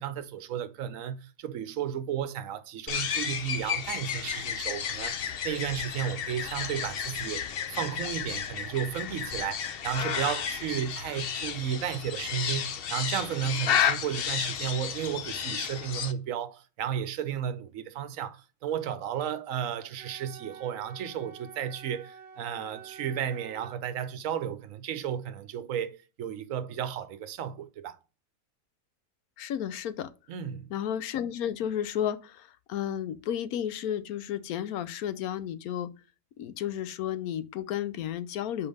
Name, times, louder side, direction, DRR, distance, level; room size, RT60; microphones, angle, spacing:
voice 1, 0.0-5.2 5.4-28.0 30.3-30.7, right 9 dB, 70° right, 1.0 m, -33 dB
sound 1, 2.9-16.1, left 8 dB, 55° left, 0.7 m, -32 dB
Wind instrument woodwind instrument, 20.0-23.8, right 6 dB, 45° right, 1.0 m, -48 dB
voice 2, 29.4-30.1 30.7-35.9 36.4-38.7, left 10 dB, 85° left, 1.1 m, -32 dB
5.3 x 4.7 x 5.3 m
omnidirectional pair, 1.5 m